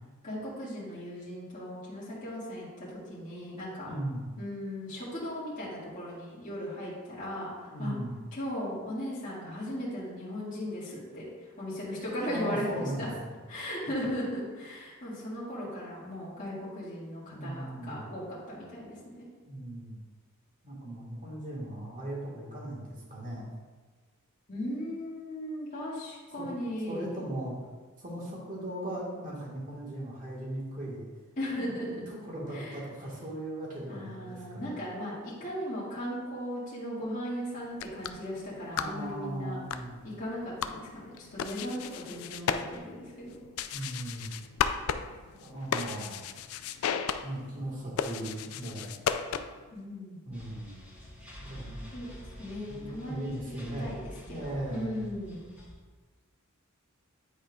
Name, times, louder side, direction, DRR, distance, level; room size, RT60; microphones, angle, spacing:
voice 1, 0.2-3.9 4.4-7.5 7.8-7.9 8.3-11.3 11.6-13.1 13.5-19.3 24.5-27.2 31.4-32.0 32.5-32.8 33.9-39.6 40.0-43.4 49.7-50.2 51.9-52.1 52.4-53.4 53.8-55.5, equal, 35° left, -9 dB, 1.9 m, -37 dB
voice 2, 3.9-4.3 7.7-8.1 12.2-13.3 17.3-18.1 19.5-20.0 20.6-23.5 26.4-26.5 26.9-27.5 28.0-31.1 31.6-34.7 38.7-40.0 43.7-44.3 45.3-46.3 47.2-48.9 50.2-50.8 51.4-51.8 52.7-54.9, right 1 dB, 40° right, -4 dB, 1.6 m, -38 dB
sound 1, 37.6-49.7, left 7 dB, 70° left, 0.3 m, -36 dB
sound 2, 50.3-55.7, equal, 5° right, 1.2 m, -48 dB
9.9 x 4.4 x 2.4 m, 1.4 s
head